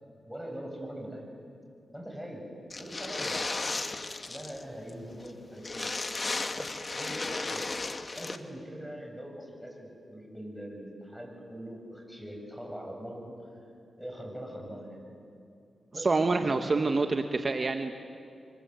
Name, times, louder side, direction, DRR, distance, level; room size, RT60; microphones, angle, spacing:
voice 1, 0.2-1.2 1.9-2.5 2.8-3.5 4.2-6.1 6.5-7.6 8.2-13.4 14.0-15.0 15.9-16.9 17.8-17.9, equal, ahead, 1 dB, 7.6 m, -42 dB
sound 1, 2.7-4.6 4.9-5.0 5.2-5.3 5.6-8.4, left 3 dB, 35° left, 1.6 m, -34 dB
voice 2, 16.0-17.9, right 3 dB, 40° right, 6 dB, 1.2 m, -27 dB
29.0 x 24.5 x 8.2 m, 2.5 s
cardioid pair, 75°, 0 cm